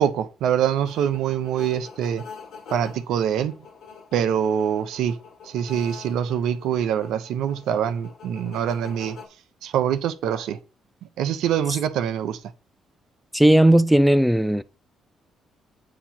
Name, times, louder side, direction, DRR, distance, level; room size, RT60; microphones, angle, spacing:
voice 1, 0.0-2.2 2.7-3.6 4.1-5.2 5.4-9.2 9.6-10.6 11.2-12.4, right 9 dB, 80° right, 0.6 m, -24 dB
sound 1, 0.8-9.3, left 5 dB, 75° left, 2.0 m, -45 dB
voice 2, 13.3-14.6, right 1 dB, 5° right, 0.5 m, -16 dB
8.5 x 2.8 x 5.7 m
supercardioid pair, 60°, 0 cm